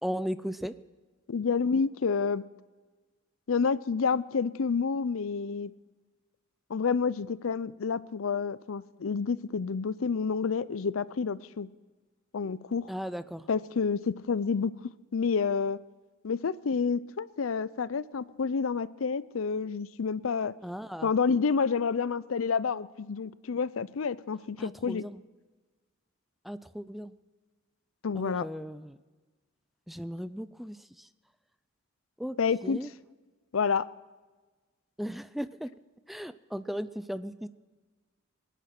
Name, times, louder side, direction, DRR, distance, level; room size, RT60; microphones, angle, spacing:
voice 1, 0.0-0.7 12.9-13.5 20.6-21.1 24.6-25.2 26.4-27.1 28.2-29.0 29.9-30.8 32.2-32.4 32.6-32.9 35.0-35.7 36.1-37.5, equal, ahead, 13 dB, 0.4 m, -36 dB
voice 2, 1.3-2.4 3.5-5.7 6.7-11.7 12.3-12.9 13.5-14.7 15.1-15.8 16.2-20.5 21.0-25.0 28.0-28.5 32.4-32.8 33.5-33.9, left 5 dB, 85° left, 18 dB, 0.5 m, -29 dB
20.5 x 10.0 x 6.0 m, 1.3 s
head